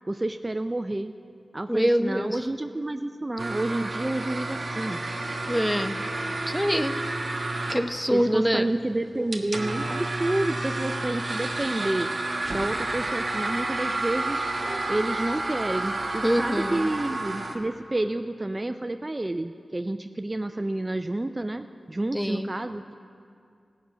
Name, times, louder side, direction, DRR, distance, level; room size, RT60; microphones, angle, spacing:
voice 1, 0.1-1.1 1.5-5.0 8.1-12.1 12.5-14.5 14.9-22.9, right 1 dB, 30° right, 8 dB, 0.4 m, -29 dB
voice 2, 1.7-2.5 5.5-6.0 6.5-7.0 7.7-8.7 16.2-16.9 22.1-22.5, equal, ahead, 9 dB, 0.7 m, -25 dB
sound 1, 3.4-17.6, right 2 dB, 55° right, 1.4 m, -31 dB
16.5 x 6.3 x 8.3 m, 2.4 s
cardioid pair, 50°, 0 cm